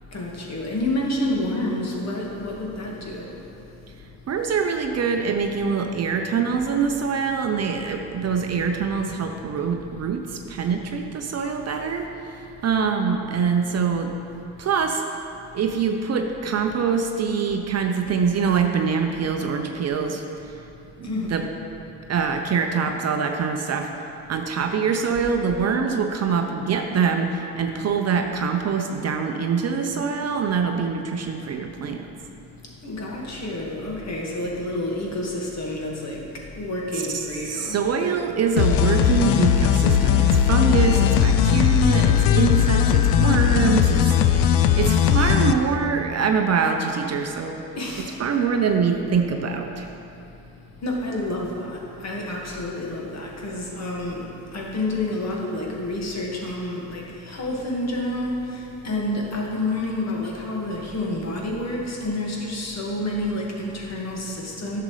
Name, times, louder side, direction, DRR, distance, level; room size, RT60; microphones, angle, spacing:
voice 1, 0.1-3.4 21.0-21.4 32.6-37.8 47.7-48.2 50.8-64.8, left 1 dB, 40° left, -2 dB, 1.8 m, -29 dB
voice 2, 4.3-14.1 14.6-15.0 15.5-20.5 21.0-21.5 22.1-23.9 24.3-32.1 37.5-47.6 48.2-49.9, right 6 dB, 40° right, 4 dB, 0.6 m, -24 dB
sound 1, 38.6-45.5, left 9 dB, 75° left, 0.5 m, -18 dB
10.5 x 6.7 x 3.2 m, 2.8 s
supercardioid pair, 75°, 40 cm